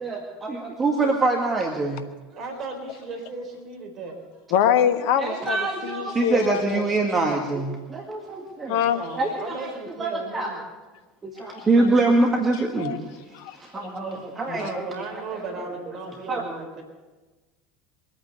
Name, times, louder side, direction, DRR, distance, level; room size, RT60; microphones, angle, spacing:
voice 1, 0.0-2.0 5.2-8.8 9.2-9.7 10.0-10.5 11.2-13.0 13.5-14.8 15.3-15.4 16.3-16.4, right 3 dB, 20° right, 2 dB, 1.9 m, -24 dB
voice 2, 2.3-4.2 8.9-10.6 14.0-16.8, right 3 dB, 40° right, 3 dB, 3.8 m, -36 dB
voice 3, 4.5-7.0 8.7-9.0 11.4-11.7 12.5-13.0 13.3-14.2 14.5-14.7, left 9 dB, 55° left, 9 dB, 1.3 m, -25 dB
23.0 x 8.8 x 6.9 m, 1.2 s
figure-of-eight pair, 75°, 0 cm